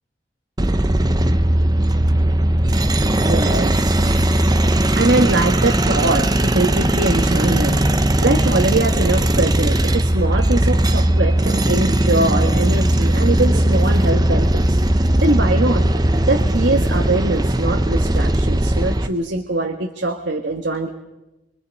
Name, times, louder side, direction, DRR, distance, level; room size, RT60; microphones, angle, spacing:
sound 1, 0.6-19.1, right 1 dB, 20° right, 0.8 m, -18 dB
voice 1, 3.2-4.1 4.9-7.8 8.2-14.8 15.2-15.8 16.3-20.9, right 2 dB, 80° right, 2 dB, 1.7 m, -22 dB
27.0 x 25.0 x 5.4 m, 1.0 s
head